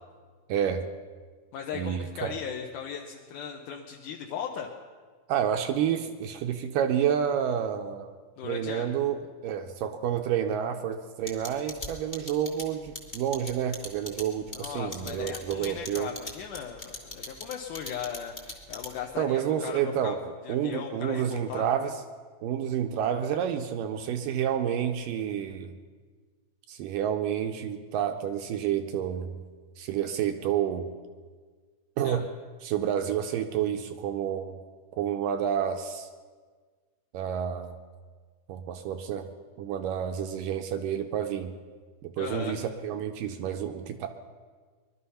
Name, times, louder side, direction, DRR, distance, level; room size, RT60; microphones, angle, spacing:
voice 1, 0.5-0.8 1.7-2.4 5.3-8.1 8.4-9.2 9.4-16.1 19.2-20.2 20.5-22.0 22.4-25.7 26.7-29.4 29.8-31.0 32.0-32.2 32.6-34.6 35.0-36.1 37.1-37.8 38.5-39.3 39.6-41.5 42.0-44.1, right 9 dB, 80° right, 6 dB, 2.1 m, -29 dB
voice 2, 1.5-4.7 8.4-8.9 14.5-20.2 20.4-21.7 32.0-32.2 42.2-42.6, left 8 dB, 70° left, 0 dB, 2.1 m, -37 dB
sound 1, 11.3-19.2, left 2 dB, 20° left, 1.3 m, -39 dB
21.0 x 12.5 x 5.6 m, 1.5 s
omnidirectional pair, 4.4 m